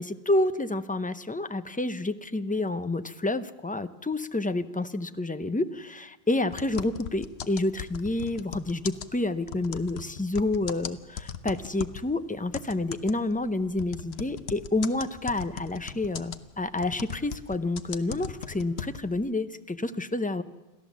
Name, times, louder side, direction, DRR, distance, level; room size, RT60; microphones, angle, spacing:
voice 1, 0.0-20.4, left 2 dB, 10° left, 11 dB, 0.5 m, -29 dB
sound 1, 6.5-12.1 12.5-19.2, left 8 dB, 80° left, 1.1 m, -38 dB
28.5 x 13.0 x 7.3 m, 1.1 s
omnidirectional pair, 1.0 m